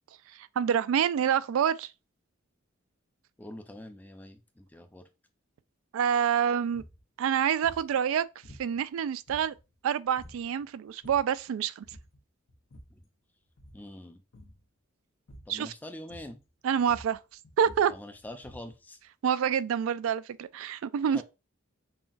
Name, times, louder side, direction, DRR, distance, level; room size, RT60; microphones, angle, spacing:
voice 1, 0.3-1.9 5.9-6.8 7.2-8.3 8.6-9.5 9.8-11.8 15.5-15.7 16.6-17.2 17.6-17.9 19.2-21.2, right 8 dB, 85° right, 0.3 m, -27 dB
voice 2, 3.4-5.1 12.9-13.0 13.7-14.2 15.5-16.4 17.9-19.0 21.1-21.2, left 1 dB, 10° left, 0.4 m, -44 dB
sound 1, 6.7-7.0 7.6-7.9 8.4-8.9 9.3-9.8 10.2-10.5 10.9-11.4 11.8-12.2 12.5-13.0 13.5-13.9 14.3-14.6 15.3-15.6 16.1-16.5 16.7-18.8, equal, 80° left, 0.9 m, -51 dB
5.5 x 2.2 x 2.5 m
head